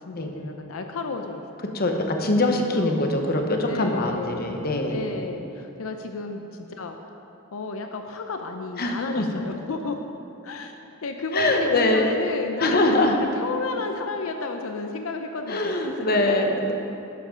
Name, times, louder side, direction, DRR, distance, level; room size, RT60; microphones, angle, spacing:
voice 1, 0.0-1.8 2.5-3.1 3.7-7.1 7.5-10.0 10.4-15.7 16.0-16.4, left 3 dB, 85° left, 5 dB, 0.6 m, -32 dB
voice 2, 1.7-5.0 8.8-9.3 11.3-12.1 12.6-13.2 15.5-16.7, left 2 dB, 50° left, 3 dB, 1.1 m, -23 dB
12.0 x 11.0 x 3.8 m, 2.9 s
head